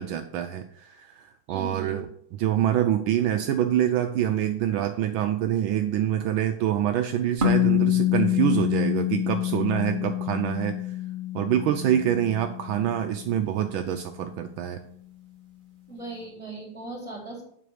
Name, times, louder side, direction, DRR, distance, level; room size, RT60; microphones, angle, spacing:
voice 1, 0.0-2.1 2.4-10.8 11.3-14.8, right 11 dB, 75° right, 7 dB, 1.3 m, -26 dB
voice 2, 1.5-2.0 15.9-17.4, right 2 dB, 5° left, -3 dB, 3.1 m, -38 dB
sound 1, 7.4-13.9, left 11 dB, 35° right, 0.9 m, -27 dB
7.7 x 5.1 x 6.4 m, 0.66 s
omnidirectional pair, 2.3 m